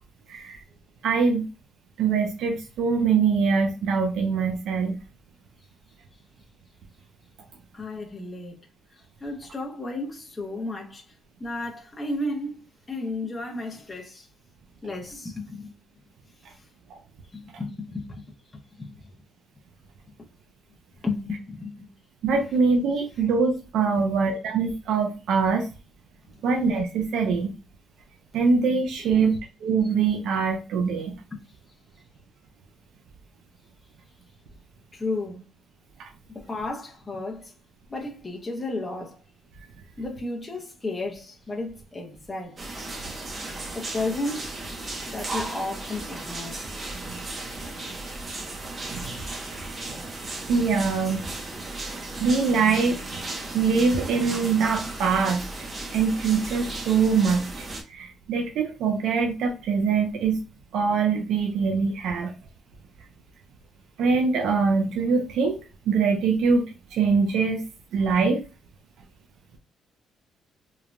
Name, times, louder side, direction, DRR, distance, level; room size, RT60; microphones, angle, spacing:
voice 1, 0.3-0.6 1.0-1.5 2.0-5.0 16.9-17.0 22.2-25.7 26.4-27.5 28.3-31.2 36.0-36.1 46.9-47.2 48.9-49.1 49.5-49.6 50.5-51.2 51.8-53.2 53.5-55.4 55.9-60.4 60.7-62.3 64.0-66.7 66.9-67.6 67.9-68.4, right 5 dB, 80° right, 0.4 m, -23 dB
voice 2, 7.7-8.6 8.9-11.1 11.4-14.3 14.8-15.8 16.5-16.6 17.3-18.3 18.8-19.1 20.2-20.3 21.0-21.9 24.0-24.1 26.3-26.4 28.3-28.4 29.0-29.3 31.3-31.4 34.9-35.4 36.3-37.5 37.9-39.2 40.0-42.6 43.7-44.6 45.1-46.6, left 2 dB, 15° left, 0.6 m, -33 dB
sound 1, 42.6-57.8, right 2 dB, 30° right, 0.6 m, -35 dB
3.1 x 2.1 x 2.4 m
cardioid pair, 130°, 0 cm